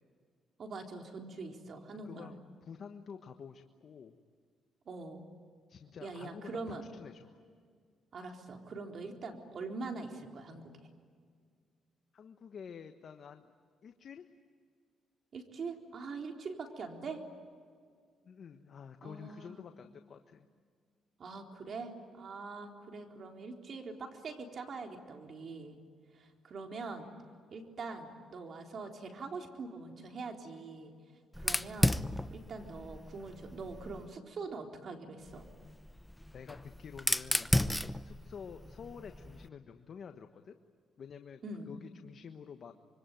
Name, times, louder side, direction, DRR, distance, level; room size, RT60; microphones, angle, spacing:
voice 1, 0.6-2.3 4.9-5.2 6.0-6.8 8.1-10.7 15.3-17.2 19.0-19.7 21.2-25.8 26.1-27.1 27.5-30.9 31.4-31.9 32.3-35.4 41.4-41.7, right 4 dB, 50° right, 3 dB, 3.9 m, -43 dB
voice 2, 2.0-4.2 5.7-7.4 12.1-13.5 13.8-14.2 18.2-20.5 36.3-40.6 41.0-42.7, left 7 dB, 55° left, 7 dB, 1.3 m, -49 dB
Fire, 31.3-34.1 35.3-39.5, left 1 dB, 5° left, 0.8 m, -34 dB
26.0 x 24.0 x 9.3 m, 2.1 s
cardioid pair, 90°, 0 cm